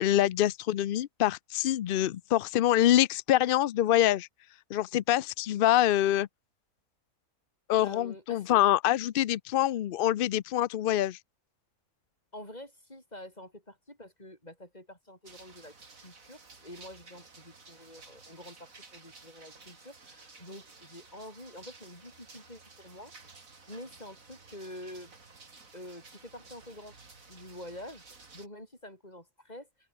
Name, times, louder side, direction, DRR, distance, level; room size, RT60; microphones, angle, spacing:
voice 1, 0.0-4.3 4.7-6.3 7.7-11.2, left 12 dB, 80° left, 0.5 m, -25 dB
voice 2, 7.8-8.6 12.3-23.1 23.7-25.1 25.7-26.9 27.3-28.0 28.3-29.7, left 1 dB, 25° left, 7.6 m, -47 dB
sound 1, 15.2-28.5, right 4 dB, 65° right, 3.4 m, -54 dB
omnidirectional pair, 1.5 m